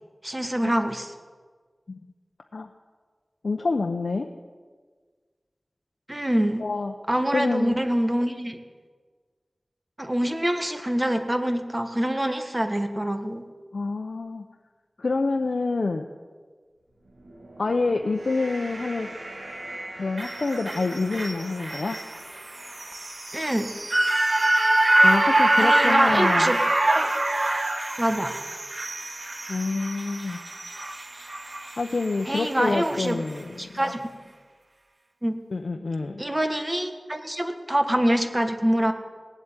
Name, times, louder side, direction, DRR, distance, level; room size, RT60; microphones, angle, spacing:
voice 1, 0.2-1.1 6.1-6.6 7.1-8.6 10.0-13.4 23.3-23.7 25.6-26.6 26.9-27.1 28.0-28.4 32.3-33.2 33.6-34.1 35.2-35.4 36.2-38.9, right 1 dB, 20° right, 7 dB, 1.5 m, -25 dB
voice 2, 3.4-4.3 6.6-6.9 7.3-7.8 13.7-14.4 15.0-16.0 17.6-19.1 20.0-22.0 25.0-26.5 29.5-30.4 31.8-33.8 35.5-36.2, left 3 dB, 80° left, 4 dB, 0.8 m, -27 dB
sound 1, 16.9-23.5, right 1 dB, 85° right, 2.2 m, -42 dB
sound 2, 20.2-32.5 32.9-33.0, right 1 dB, 50° right, 1.3 m, -24 dB
18.5 x 8.2 x 9.0 m, 1.5 s
wide cardioid pair, 70°, 0 cm